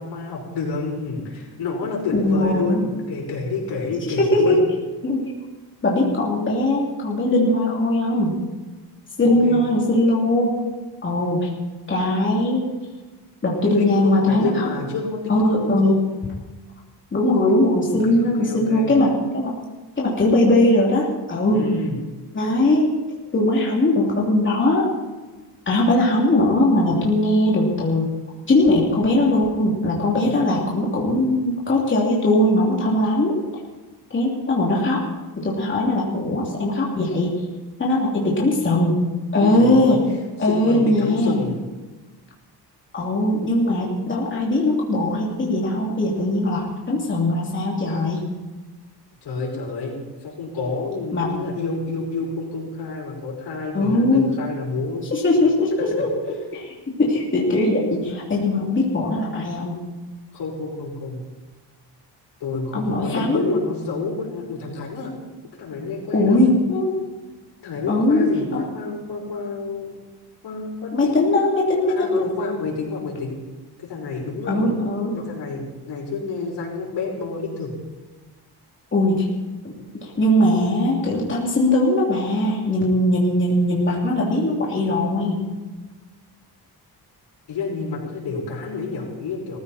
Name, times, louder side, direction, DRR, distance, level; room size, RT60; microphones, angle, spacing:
voice 1, 0.0-4.7 9.2-9.6 13.6-15.9 18.0-18.9 21.5-22.0 39.4-40.0 40.4-41.6 49.2-55.1 60.3-61.2 62.4-65.1 65.6-66.4 67.6-70.0 70.4-71.1 71.9-73.4 73.8-74.7 75.1-77.7 87.5-89.6, left 3 dB, 80° left, -2 dB, 5.9 m, -29 dB
voice 2, 2.1-2.8 4.2-4.6 5.0-5.3 5.8-8.4 9.2-10.5 11.0-11.5 11.9-12.7 13.4-14.7 15.3-16.0 17.1-19.5 20.0-21.6 22.3-22.9 23.3-24.9 25.7-28.0 28.5-33.4 34.1-35.0 35.4-37.3 37.8-39.0 39.3-40.0 40.4-41.4 42.9-48.2 51.1-51.3 53.7-54.2 55.1-56.1 56.5-56.7 57.0-59.8 62.7-63.6 66.1-67.0 67.9-68.6 70.9-72.5 74.5-75.1 78.9-79.3 79.6-85.4, left 1 dB, 30° left, -4 dB, 3.1 m, -20 dB
19.0 x 15.0 x 4.4 m, 1.2 s
wide cardioid pair, 155°, 41 cm